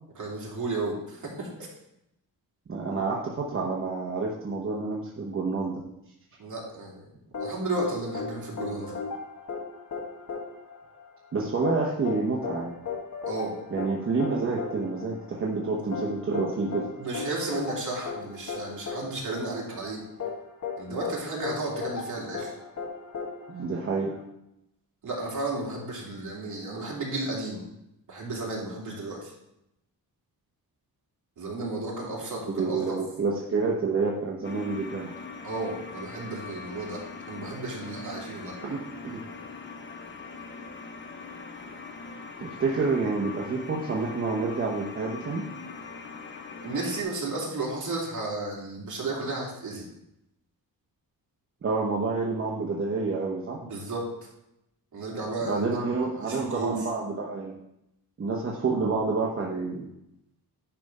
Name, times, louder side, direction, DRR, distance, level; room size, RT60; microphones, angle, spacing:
voice 1, 0.1-1.7 6.4-7.1 7.4-9.0 13.3-13.5 17.0-20.0 20.8-22.5 25.0-27.6 28.1-29.3 31.4-33.0 35.4-38.5 46.6-49.9 53.6-54.3 54.9-55.8 56.2-56.8, right 2 dB, 55° right, -4 dB, 2.7 m, -33 dB
voice 2, 2.7-5.8 11.3-12.8 13.7-16.9 23.5-24.2 32.6-35.1 38.6-39.2 42.4-45.4 51.6-53.6 55.4-57.6 58.2-59.9, right 4 dB, 35° right, -3 dB, 1.0 m, -28 dB
sound 1, 7.3-24.2, left 5 dB, 50° left, 1.4 m, -36 dB
sound 2, 34.4-47.0, left 4 dB, 30° left, 0.7 m, -41 dB
10.5 x 3.5 x 5.4 m, 0.83 s
wide cardioid pair, 145°, 37 cm